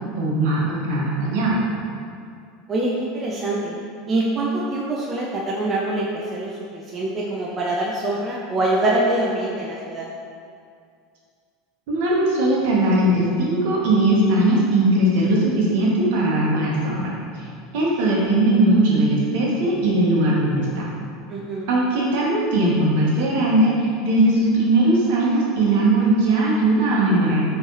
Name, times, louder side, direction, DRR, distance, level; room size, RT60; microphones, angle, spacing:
voice 1, 0.2-1.6 11.9-17.1 17.7-20.9 21.7-27.4, right 1 dB, 65° right, -4 dB, 1.0 m, -19 dB
voice 2, 2.7-3.8 4.1-10.1 21.3-21.7, right 2 dB, 35° right, -3 dB, 0.5 m, -24 dB
4.2 x 3.2 x 3.0 m, 2.3 s
hypercardioid pair, 85°, 0 cm